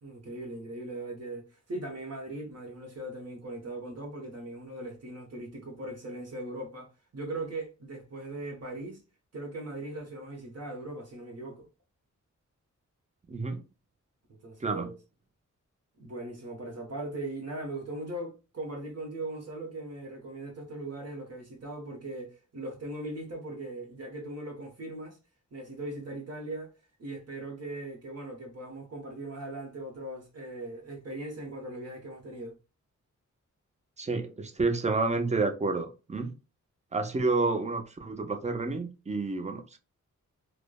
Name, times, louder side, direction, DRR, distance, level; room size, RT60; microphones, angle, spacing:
voice 1, 0.0-9.0 9.3-11.7 14.4-15.0 16.0-25.2 25.5-32.6, right 2 dB, 55° right, 1.1 m, -39 dB
voice 2, 13.3-13.6 14.6-14.9 34.0-36.3 36.9-39.8, right 3 dB, 20° right, 0.5 m, -29 dB
3.2 x 2.0 x 2.2 m
cardioid pair, 75°, 31 cm